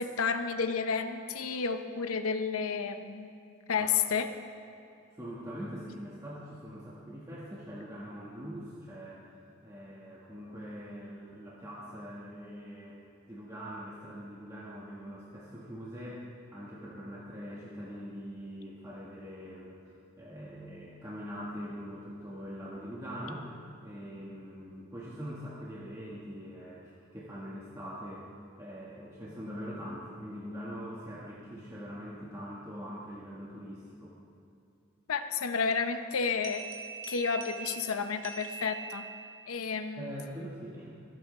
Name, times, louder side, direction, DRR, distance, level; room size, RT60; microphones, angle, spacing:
voice 1, 0.0-3.3 3.7-4.3 35.1-36.7 37.1-39.0 39.5-40.1, left 5 dB, 85° left, 8 dB, 0.7 m, -31 dB
voice 2, 5.2-9.3 9.6-13.0 13.3-16.2 16.5-23.5 23.8-28.2 28.6-34.2 40.0-40.9, equal, 15° right, -7 dB, 1.4 m, -43 dB
sound 1, 36.4-39.4, right 4 dB, 70° right, 2.0 m, -42 dB
25.5 x 9.2 x 3.2 m, 2.7 s
head